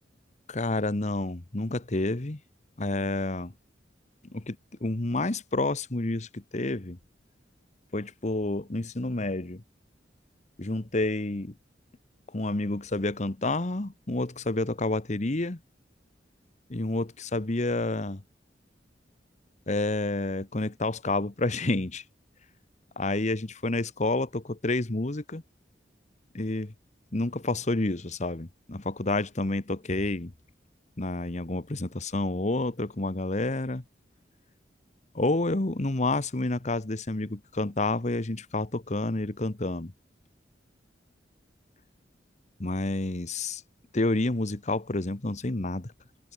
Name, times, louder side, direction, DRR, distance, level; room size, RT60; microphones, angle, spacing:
voice 1, 0.5-2.4 2.8-3.5 4.3-7.0 7.9-9.6 10.6-11.5 12.3-15.6 16.7-18.2 19.7-22.0 23.0-25.4 26.3-26.7 27.1-30.3 31.0-33.8 35.1-39.9 42.6-43.6 43.9-45.9, left 2 dB, 40° left, 1.2 m, -29 dB
head